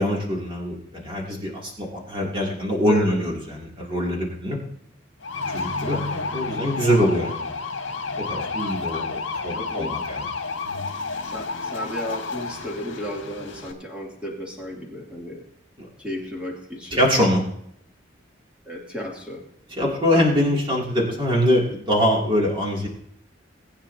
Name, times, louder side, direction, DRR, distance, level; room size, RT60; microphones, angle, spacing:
voice 1, 0.0-4.6 5.5-7.5 8.3-9.2 9.4-10.3 10.6-10.9 16.9-17.4 19.8-22.9, equal, 25° right, -3 dB, 2.9 m, -23 dB
voice 2, 2.9-3.2 9.5-9.9 11.2-15.4 16.0-17.3 18.6-19.4, left 1 dB, 5° right, -3 dB, 2.8 m, -34 dB
sound 1, 5.2-13.7, left 4 dB, 70° left, 1.6 m, -30 dB
19.5 x 9.0 x 2.8 m, 0.72 s
head